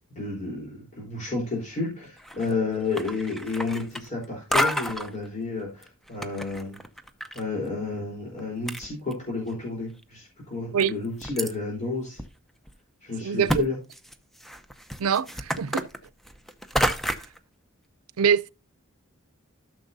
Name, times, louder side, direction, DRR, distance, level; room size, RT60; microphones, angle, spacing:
voice 1, 0.1-6.8 7.3-12.2 13.0-13.8, left 3 dB, 35° left, 3.8 m, -31 dB
sound 1, 2.2-2.6 2.9-4.2 4.5-5.1 5.8-7.4 7.7-7.8 8.4-8.5 8.7-9.5 10.0-10.1 10.8-11.5 12.2-12.3 12.7-12.8 13.5-13.6 13.9-17.4, equal, ahead, 0.6 m, -29 dB
voice 2, 13.2-13.6 15.0-15.9 18.2-18.5, right 7 dB, 85° right, 0.5 m, -24 dB
13.0 x 6.5 x 2.7 m
head